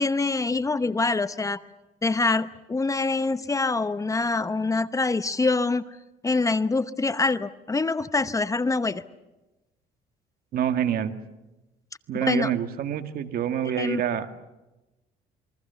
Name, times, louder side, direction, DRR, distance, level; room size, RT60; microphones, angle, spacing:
voice 1, 0.0-1.6 2.0-5.8 6.2-9.0 12.2-12.5 13.8-14.0, left 3 dB, 20° left, 13 dB, 0.9 m, -25 dB
voice 2, 10.5-11.1 12.1-14.4, right 9 dB, 65° right, 8 dB, 2.0 m, -26 dB
27.5 x 23.0 x 7.0 m, 1.0 s
cardioid pair, 110°, 17 cm